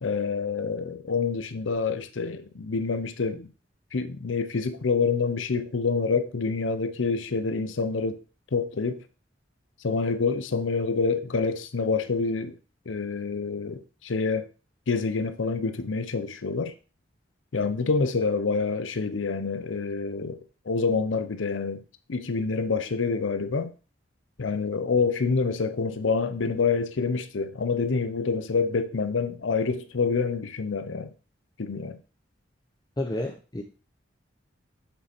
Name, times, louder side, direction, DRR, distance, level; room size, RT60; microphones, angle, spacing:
voice 1, 0.0-3.5 3.9-8.2 8.5-9.0 9.8-12.5 12.9-14.5 14.9-16.7 17.5-20.4 20.7-21.8 22.1-23.7 24.4-31.1 31.6-32.0, left 4 dB, 80° left, 0.6 m, -27 dB
voice 2, 33.0-33.6, left 1 dB, 20° left, 0.6 m, -30 dB
6.9 x 5.5 x 4.3 m
head